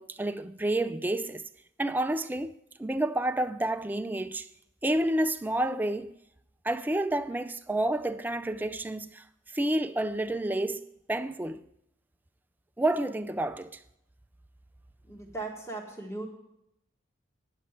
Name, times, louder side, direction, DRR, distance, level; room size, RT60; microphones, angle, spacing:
voice 1, 0.0-1.5 1.8-4.5 4.8-6.1 6.6-11.6 12.8-13.8, right 1 dB, 10° right, 0.3 m, -30 dB
voice 2, 15.1-16.3, right 2 dB, 15° left, 1.5 m, -38 dB
10.0 x 6.5 x 8.7 m
head